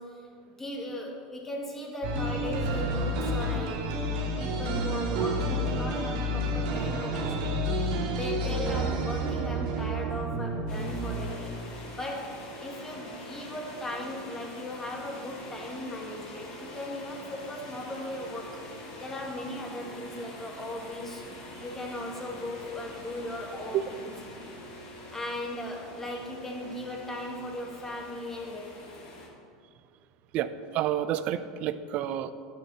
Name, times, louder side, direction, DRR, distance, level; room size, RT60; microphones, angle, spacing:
voice 1, 0.0-3.9 4.4-11.5 12.0-23.8 25.1-29.0, left 1 dB, 15° left, 0 dB, 2.1 m, -38 dB
sound 1, 2.0-11.9, right 1 dB, 70° right, 2.3 m, -30 dB
sound 2, 10.7-29.3, left 1 dB, 60° left, 2.8 m, -44 dB
voice 2, 30.3-32.3, right 11 dB, 55° right, 13 dB, 0.6 m, -29 dB
12.0 x 7.7 x 4.1 m, 2.1 s
supercardioid pair, 110°, 3 cm